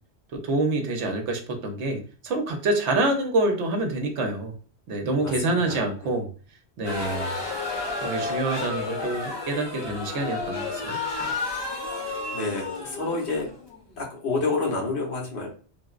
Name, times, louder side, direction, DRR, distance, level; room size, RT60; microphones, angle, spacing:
voice 1, 0.3-4.5 4.9-6.3 6.8-7.3 8.0-11.0, right 2 dB, 85° right, 3 dB, 1.0 m, -26 dB
voice 2, 5.1-5.8 12.3-13.5 14.0-15.5, left 3 dB, 80° left, -2 dB, 1.3 m, -29 dB
sound 1, 6.8-14.0, left 3 dB, 30° left, 0.6 m, -31 dB
4.0 x 2.0 x 2.4 m, 0.40 s
omnidirectional pair, 1.1 m